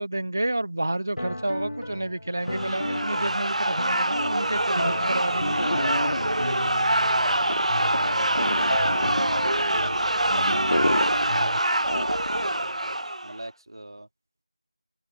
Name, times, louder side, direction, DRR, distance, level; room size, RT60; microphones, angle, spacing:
voice 1, 0.0-5.8, right 1 dB, 25° right, 0.8 m, -30 dB
sound 1, 1.2-11.6, left 1 dB, 80° left, 1.6 m, -34 dB
sound 2, 2.5-13.4, right 1 dB, 80° right, 0.5 m, -25 dB
sound 3, 4.8-12.6, left 1 dB, 50° left, 0.5 m, -32 dB
voice 2, 6.2-8.6 8.8-11.1 11.6-14.1, right 1 dB, 45° right, 3.6 m, -43 dB
figure-of-eight pair, 180°, 4 cm